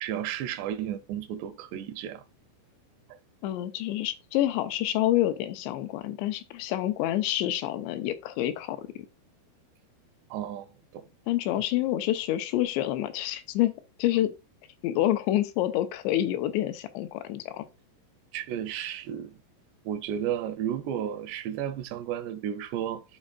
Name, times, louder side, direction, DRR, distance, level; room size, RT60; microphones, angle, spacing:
voice 1, 0.0-2.2 10.3-11.0 11.6-11.7 18.3-19.4 19.9-23.0, right 10 dB, 80° right, 2.7 m, -33 dB
voice 2, 3.4-9.1 11.3-14.3 14.8-17.7, left 13 dB, 80° left, 3.0 m, -28 dB
11.5 x 4.3 x 2.3 m
omnidirectional pair, 5.1 m